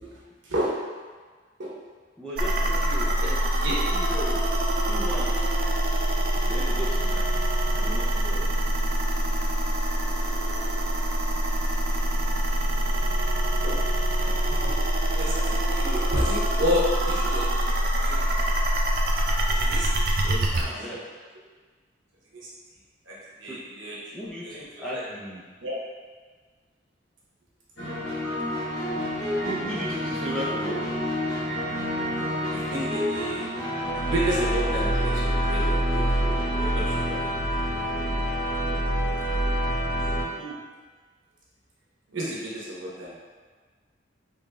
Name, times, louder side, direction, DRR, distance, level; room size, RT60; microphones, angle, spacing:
voice 1, 0.0-0.8 1.6-1.7 3.2-3.8 13.6-13.8 14.1-14.8 15.1-17.5 18.0-18.3 19.5-19.9 22.3-22.5 23.1-24.0 24.4-25.0 25.6-25.7 32.5-33.5 33.9-37.2 42.1-43.1, equal, 80° right, -6 dB, 0.9 m, -31 dB
voice 2, 2.2-3.1 3.9-4.4 4.9-5.3 6.5-7.3 7.7-8.5 20.2-21.0 23.4-23.6 24.1-25.4 29.4-30.9 40.4-40.6, equal, 5° left, -7 dB, 0.5 m, -35 dB
sound 1, 2.4-20.6, right 1 dB, 50° right, 0.4 m, -25 dB
sound 2, 27.8-40.2, equal, 85° left, 1.4 m, -27 dB
3.7 x 3.6 x 2.3 m, 1.5 s
head